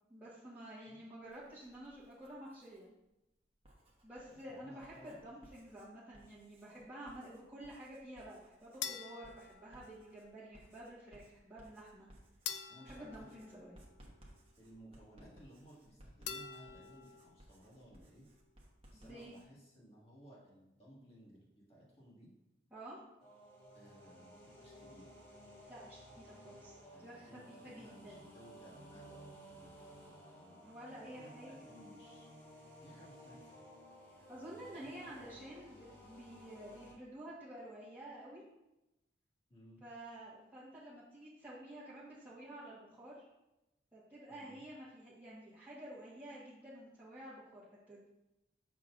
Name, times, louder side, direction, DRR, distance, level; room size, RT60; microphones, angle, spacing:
voice 1, 0.1-2.9 4.0-12.1 12.8-13.7 18.9-19.3 22.7-23.0 25.7-28.2 30.5-31.5 34.1-38.4 39.8-43.3 43.9-48.1, right 1 dB, 10° right, -12 dB, 1.3 m, -51 dB
Writing, 1.2-2.8 3.5-19.5, right 1 dB, 30° right, 1.2 m, -62 dB
voice 2, 4.2-5.2 12.7-14.1 14.6-18.3 18.9-22.3 23.7-25.2 26.9-32.3 32.8-33.5 34.6-35.3 39.5-39.8 44.3-44.6, equal, 35° left, -5 dB, 1.9 m, -59 dB
sound 1, 8.8-10.3 12.5-14.3 16.3-17.4, left 8 dB, 80° left, 0.5 m, -46 dB
sound 2, 23.2-36.9, equal, 15° left, 1.9 m, -56 dB
7.0 x 5.9 x 2.6 m, 0.94 s
head